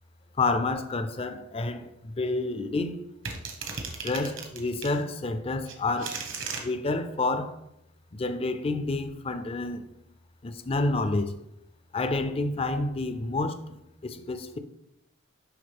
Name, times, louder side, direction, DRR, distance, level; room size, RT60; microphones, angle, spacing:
voice 1, 0.4-3.1 4.0-6.3 6.6-7.6 8.1-9.9 10.4-11.3 11.9-14.6, left 2 dB, 25° left, 0.4 m, -29 dB
sound 1, 3.3-5.0 5.7-6.6, right 5 dB, 65° right, 1.2 m, -36 dB
10.5 x 3.5 x 3.5 m
head